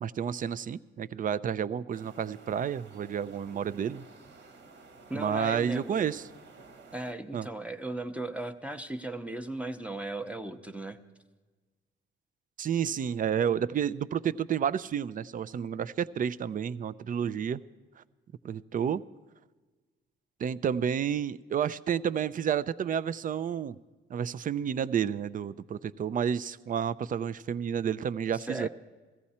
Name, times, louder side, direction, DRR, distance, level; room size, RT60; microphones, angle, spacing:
voice 1, 0.0-4.1 5.1-6.2 7.3-7.5 12.6-17.6 18.4-19.0 20.4-23.8 24.1-28.7, right 8 dB, 45° right, 17 dB, 0.5 m, -30 dB
sound 1, 1.9-7.1, right 3 dB, 65° right, 1.6 m, -53 dB
voice 2, 5.1-6.1 6.9-11.0 28.3-28.7, right 2 dB, 5° right, 6 dB, 0.8 m, -37 dB
16.5 x 14.5 x 4.3 m, 1.3 s
cardioid pair, 90°, 20 cm